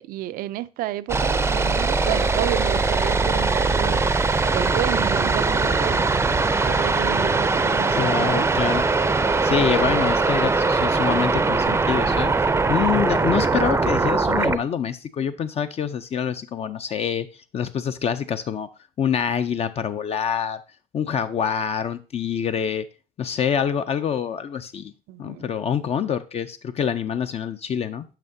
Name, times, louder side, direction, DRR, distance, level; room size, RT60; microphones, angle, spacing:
voice 1, 0.0-4.0 4.5-6.1 6.6-8.5 13.1-13.5 25.1-25.5, right 14 dB, 65° right, 0.4 m, -31 dB
sound 1, 1.1-14.6, right 3 dB, 15° right, 0.5 m, -21 dB
voice 2, 7.9-8.8 9.4-12.3 12.7-17.3 17.5-18.7 19.0-20.6 20.9-22.8 23.2-24.9 25.2-28.0, left 8 dB, 40° left, 0.5 m, -26 dB
9.1 x 5.7 x 2.7 m
supercardioid pair, 90°, 16 cm